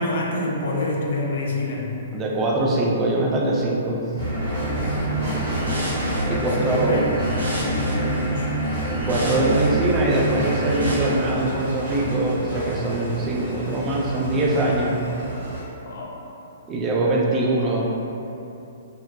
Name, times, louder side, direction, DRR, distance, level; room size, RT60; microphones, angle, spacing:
voice 1, 0.0-2.0 4.6-5.1 6.3-8.6 15.8-16.4, left 2 dB, 55° left, -2 dB, 0.4 m, -28 dB
voice 2, 2.1-4.0 6.3-7.2 8.9-15.0 16.7-18.0, right 2 dB, 20° right, -3 dB, 0.3 m, -22 dB
sound 1, 4.1-10.9, right 1 dB, 75° right, 0.6 m, -27 dB
sound 2, 4.2-15.6, equal, 45° right, 0.9 m, -31 dB
sound 3, 10.1-15.7, equal, 75° left, 0.8 m, -40 dB
2.6 x 2.1 x 2.3 m, 2.8 s
figure-of-eight pair, 115°, 0 cm